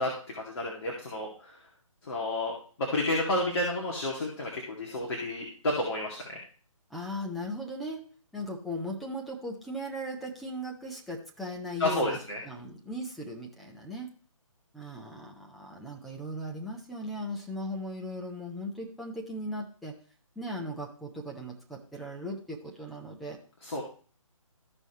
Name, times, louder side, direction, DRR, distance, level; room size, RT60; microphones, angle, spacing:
voice 1, 0.0-1.5 2.1-2.5 2.9-6.4 11.8-12.4 23.6-23.8, left 1 dB, 45° left, -3 dB, 2.3 m, -31 dB
voice 2, 6.9-8.0 8.3-12.2 12.4-14.1 14.7-20.0 20.4-23.4, equal, ahead, -2 dB, 0.3 m, -38 dB
14.5 x 5.4 x 3.1 m, 0.41 s
figure-of-eight pair, 150°, 18 cm